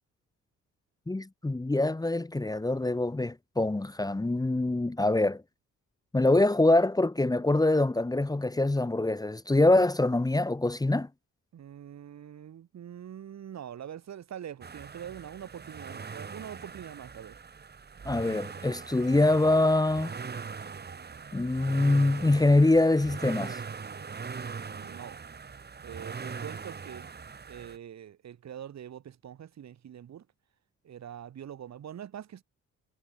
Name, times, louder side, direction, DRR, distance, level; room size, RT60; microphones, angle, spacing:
voice 1, 1.1-5.4 6.1-11.1 18.0-20.1 21.3-23.6, left 2 dB, 10° left, 1.5 m, -24 dB
voice 2, 11.5-17.4 24.7-25.2 25.8-27.2 27.5-30.3 30.8-32.4, right 9 dB, 60° right, 4.6 m, -44 dB
sound 1, 14.6-27.8, right 5 dB, 35° right, 2.7 m, -41 dB
cardioid pair, 90°, 30 cm